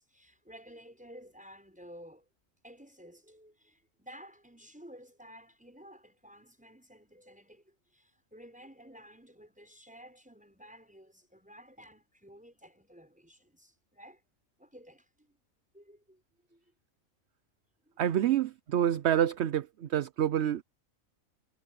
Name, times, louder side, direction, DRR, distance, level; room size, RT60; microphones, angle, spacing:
voice 1, 0.0-2.2 2.6-14.2 14.6-15.4 15.7-16.2 16.5-16.6 17.8-17.9, equal, 5° right, 6.6 m, -53 dB
voice 2, 18.0-20.6, right 10 dB, 60° right, 0.8 m, -27 dB
omnidirectional pair, 1.4 m